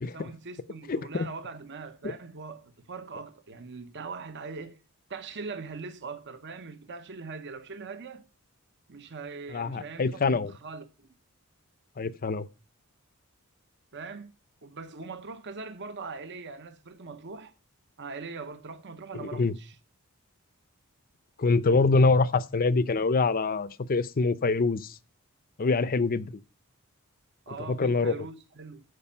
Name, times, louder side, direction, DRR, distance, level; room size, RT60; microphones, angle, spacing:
voice 1, 0.1-4.8 5.1-8.2 8.9-11.1 13.9-14.3 14.6-17.5 18.0-19.8 27.5-28.8, right 4 dB, 55° right, 0.9 m, -41 dB
voice 2, 0.9-1.3 2.0-2.1 9.5-10.5 12.0-12.5 19.1-19.5 21.4-25.0 25.6-26.3 27.7-28.2, left 3 dB, 40° left, 0.6 m, -25 dB
14.5 x 5.2 x 5.5 m
head